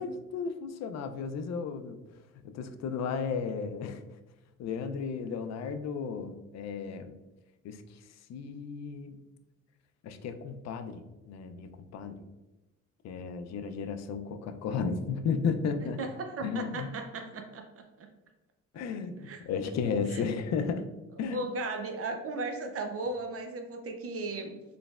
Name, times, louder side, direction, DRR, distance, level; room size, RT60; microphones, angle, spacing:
voice 1, 0.0-2.0 2.4-4.0 4.6-7.1 7.6-8.0 8.3-9.2 10.0-12.3 13.0-16.0 16.4-16.9 18.7-20.9 21.2-21.5, left 5 dB, 60° left, 9 dB, 0.4 m, -34 dB
voice 2, 16.0-17.6 18.0-18.1 19.2-19.7 20.1-20.2 21.3-24.6, right 2 dB, 50° right, 5 dB, 0.5 m, -36 dB
4.1 x 3.2 x 2.3 m, 1.1 s
cardioid pair, 90°, 30 cm